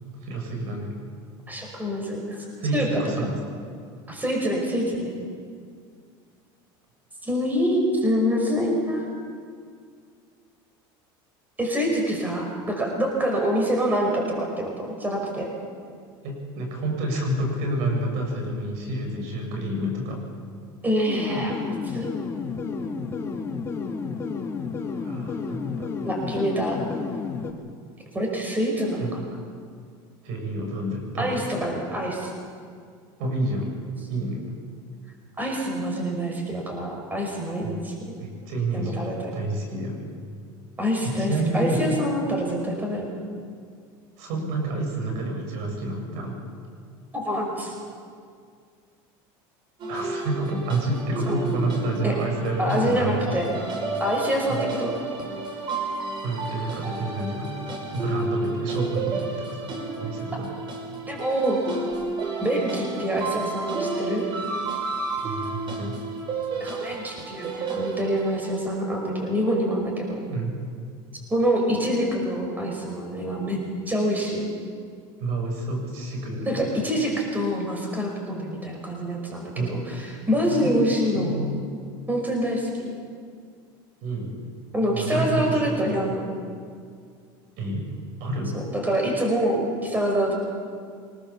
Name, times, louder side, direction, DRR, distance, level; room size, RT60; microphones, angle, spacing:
voice 1, 0.2-1.0 2.6-3.4 16.2-20.2 24.9-25.9 29.0-29.1 30.2-31.5 33.2-33.7 34.1-34.4 37.6-37.8 38.2-40.1 41.0-41.8 44.2-46.4 49.9-53.4 54.5-54.6 56.2-57.6 57.9-60.6 65.2-66.0 70.3-70.6 75.2-76.6 79.5-79.8 80.5-80.8 81.1-81.5 84.0-84.3 84.9-85.9 87.6-87.9 88.2-88.6, right 2 dB, 70° right, 2 dB, 7.3 m, -29 dB
voice 2, 1.5-2.4 2.7-2.9 4.1-5.1 7.2-9.1 11.6-15.5 20.8-22.1 26.0-26.8 28.1-29.2 31.2-32.3 35.4-38.2 38.7-39.2 40.8-43.1 47.1-47.7 51.3-51.4 52.0-52.2 52.6-53.5 54.0-54.9 61.1-61.6 62.4-64.3 66.6-70.2 71.3-73.6 73.9-74.4 76.5-81.3 82.1-82.7 84.7-86.2 88.5-90.3, equal, 15° right, 0 dB, 5.5 m, -26 dB
sound 1, 21.1-27.5, left 5 dB, 20° left, 2.3 m, -31 dB
sound 2, 49.8-68.5, right 3 dB, 40° right, 5.1 m, -32 dB
25.5 x 20.0 x 7.3 m, 2.2 s
supercardioid pair, 125°, 12 cm